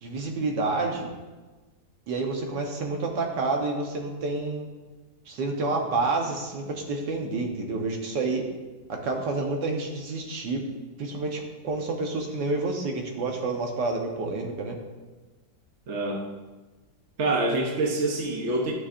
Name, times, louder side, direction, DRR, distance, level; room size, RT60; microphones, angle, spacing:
voice 1, 0.0-1.1 2.1-4.7 5.3-8.4 8.9-10.6 11.0-14.8, right 3 dB, 90° right, 2 dB, 1.7 m, -29 dB
voice 2, 15.9-16.2 17.2-18.7, right 2 dB, 50° right, -1 dB, 1.0 m, -26 dB
12.0 x 5.7 x 2.5 m, 1.2 s
omnidirectional pair, 1.8 m